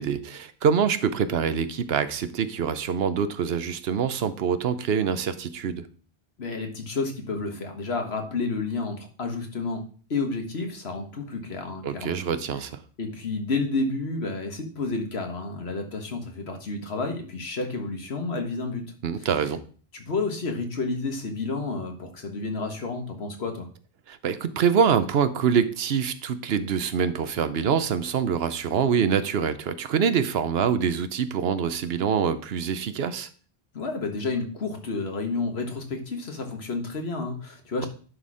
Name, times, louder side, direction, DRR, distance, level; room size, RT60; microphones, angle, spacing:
voice 1, 0.0-5.8 11.8-12.8 19.0-19.6 24.1-33.3, right 7 dB, 75° right, 12 dB, 1.0 m, -25 dB
voice 2, 6.4-9.8 10.1-12.2 13.0-18.8 19.2-19.3 19.9-23.7 33.7-37.9, left 3 dB, 90° left, 4 dB, 1.8 m, -30 dB
10.5 x 4.3 x 4.8 m, 0.41 s
omnidirectional pair, 1.0 m